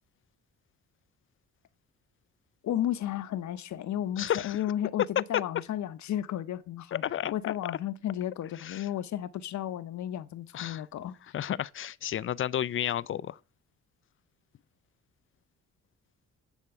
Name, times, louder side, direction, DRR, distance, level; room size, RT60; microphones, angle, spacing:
voice 1, 2.6-7.0 7.3-11.1, left 11 dB, 70° left, 1.0 m, -33 dB
voice 2, 4.2-4.6 6.9-7.3 8.6-8.8 10.5-10.8 11.3-13.3, left 10 dB, 45° left, 0.5 m, -32 dB
10.5 x 4.6 x 7.9 m
cardioid pair, 90°, 30 cm